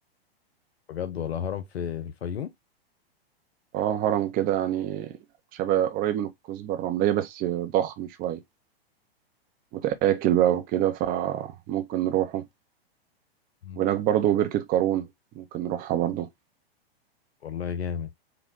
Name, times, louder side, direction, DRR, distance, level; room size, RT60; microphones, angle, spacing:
voice 1, 0.9-2.5 13.6-13.8 17.4-18.1, left 8 dB, 90° left, 0.6 m, -32 dB
voice 2, 3.7-5.1 5.5-8.4 9.7-12.5 13.8-15.1 15.4-16.3, right 12 dB, 30° right, 0.6 m, -25 dB
3.8 x 2.2 x 3.6 m
hypercardioid pair, 115°, 31 cm